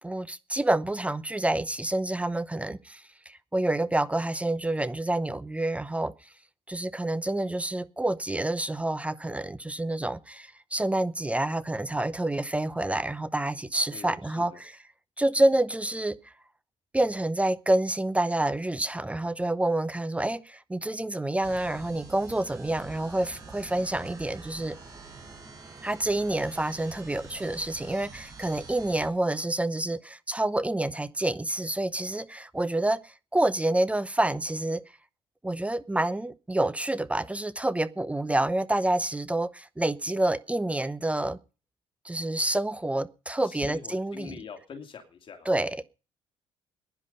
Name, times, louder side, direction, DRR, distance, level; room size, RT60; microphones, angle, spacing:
voice 1, 0.0-6.1 6.7-14.8 15.2-16.3 16.9-24.8 25.8-34.8 35.4-41.4 42.0-44.4 45.4-45.9, right 1 dB, 10° right, 0.9 m, -28 dB
voice 2, 13.9-14.6 43.4-45.5, left 6 dB, 45° left, 2.9 m, -44 dB
sound 1, 21.4-29.1, right 4 dB, 30° right, 6.8 m, -46 dB
16.5 x 10.5 x 5.4 m
supercardioid pair, 80°, 12 cm